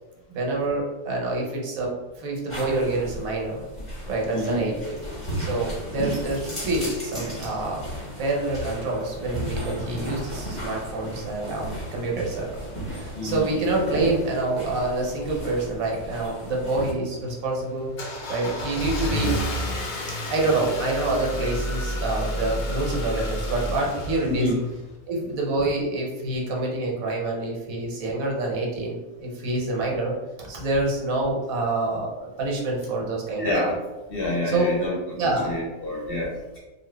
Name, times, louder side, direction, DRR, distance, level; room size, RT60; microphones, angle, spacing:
voice 1, 0.3-3.6 4.1-5.0 5.4-12.6 12.9-17.9 18.3-19.4 20.3-24.5 25.1-33.5 34.4-34.7 35.2-35.5, right 2 dB, 75° right, -1 dB, 1.2 m, -27 dB
sound 1, 2.5-16.9, equal, 20° left, 1.0 m, -35 dB
voice 2, 4.3-4.7 13.1-13.6 24.2-24.5 33.4-33.8 34.1-35.0 35.2-36.6, left 1 dB, 50° left, -4 dB, 0.8 m, -27 dB
Car / Engine starting, 16.7-24.9, equal, 80° left, 0.4 m, -30 dB
2.8 x 2.4 x 3.2 m, 1.1 s
omnidirectional pair, 1.5 m